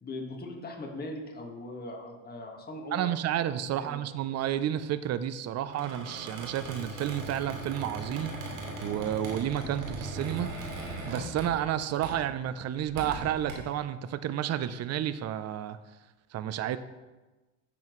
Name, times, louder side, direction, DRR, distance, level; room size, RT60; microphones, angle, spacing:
voice 1, 0.0-3.1 3.7-4.1, left 2 dB, 25° left, 1 dB, 1.7 m, -40 dB
voice 2, 2.9-10.5 11.0-15.8 16.3-16.8, right 11 dB, 40° right, 14 dB, 0.6 m, -31 dB
Squeak, 5.7-11.7 12.0-12.3 12.8-13.5, right 2 dB, 90° right, 2.7 m, -39 dB
11.5 x 7.1 x 3.2 m, 1.2 s
supercardioid pair, 95°, 40 cm